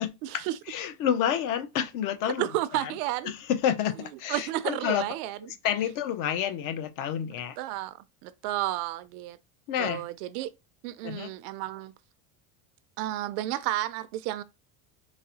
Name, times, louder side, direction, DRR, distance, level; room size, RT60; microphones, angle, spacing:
voice 1, 0.0-2.5 2.7-2.9 3.2-5.1 5.6-7.6 9.7-10.1 11.0-11.3, left 9 dB, 45° left, 0.5 m, -29 dB
voice 2, 2.4-3.3 4.0-5.4 7.6-9.4 9.8-10.5 10.8-11.9 13.0-14.4, right 14 dB, 80° right, 0.5 m, -32 dB
3.9 x 2.0 x 2.7 m
cardioid pair, 150°, 45 cm